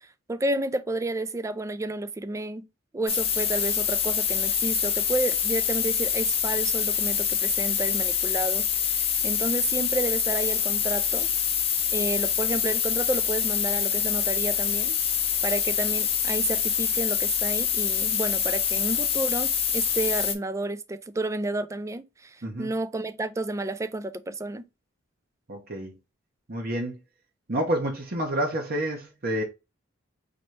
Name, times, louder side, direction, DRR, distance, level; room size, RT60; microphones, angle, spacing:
voice 1, 0.0-2.7 2.9-11.3 11.9-15.0 15.4-24.7, right 2 dB, 15° right, 0.3 m, -31 dB
sound 1, 3.1-20.3, left 8 dB, 30° left, 0.7 m, -25 dB
voice 2, 25.5-25.9 26.5-27.0 27.5-29.4, right 1 dB, 50° right, 0.9 m, -29 dB
4.1 x 3.2 x 3.2 m
head